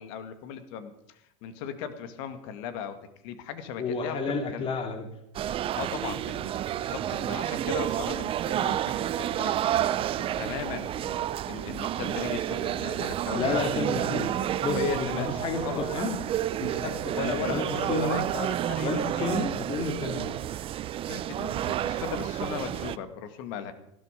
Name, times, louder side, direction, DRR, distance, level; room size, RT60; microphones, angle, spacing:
voice 1, 0.0-3.0 3.2-4.7 5.8-9.6 10.2-14.5 14.7-15.3 15.6-15.9 17.1-19.3 21.1-23.7, left 7 dB, 60° left, 10 dB, 2.1 m, -37 dB
voice 2, 3.8-5.0 13.3-14.3 14.6-16.2 16.6-18.2 18.8-20.3, left 3 dB, 30° left, 5 dB, 2.6 m, -31 dB
sound 1, 5.3-23.0, right 12 dB, 30° right, 0.6 m, -30 dB
15.5 x 12.5 x 5.2 m, 0.79 s
supercardioid pair, 115°, 17 cm